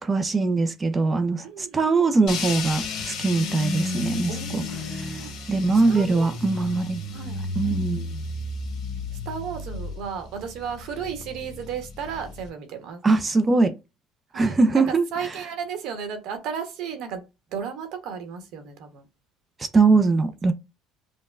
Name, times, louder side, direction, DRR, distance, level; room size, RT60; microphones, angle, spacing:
voice 1, 0.0-4.6 4.9-5.2 5.5-7.0 7.6-8.2 13.0-13.7 14.3-15.1 19.6-20.5, right 3 dB, 20° right, 0.4 m, -22 dB
voice 2, 1.4-2.2 4.3-5.3 5.9-6.4 7.1-8.1 9.3-13.0 14.3-17.2 17.5-19.0, right 7 dB, 65° right, 0.9 m, -34 dB
sound 1, 2.3-12.5, left 3 dB, 60° left, 1.2 m, -33 dB
5.3 x 2.1 x 2.4 m
cardioid pair, 125°, 0 cm